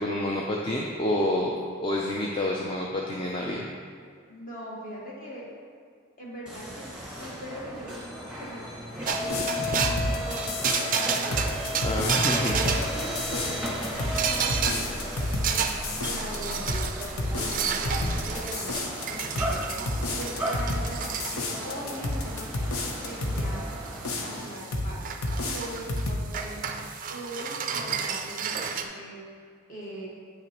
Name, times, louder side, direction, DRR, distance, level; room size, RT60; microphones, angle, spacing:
voice 1, 0.0-1.5 1.8-3.6 11.8-12.5, left 1 dB, 25° left, -2 dB, 0.4 m, -28 dB
voice 2, 4.3-5.5 6.2-8.0 8.4-8.6 9.1-11.5 12.2-16.7 17.3-19.6 20.1-22.5 23.0-23.6 24.2-25.1 25.4-26.6 27.1-29.2 29.7-30.1, equal, 40° left, -5 dB, 1.5 m, -40 dB
sound 1, 6.5-24.4, equal, 5° right, 1.5 m, -35 dB
sound 2, 9.1-28.8, right 6 dB, 40° right, 0.4 m, -32 dB
sound 3, 9.2-23.6 24.0-24.9 25.2-26.3, left 2 dB, 80° left, 0.8 m, -31 dB
8.6 x 5.9 x 3.0 m, 2.1 s
head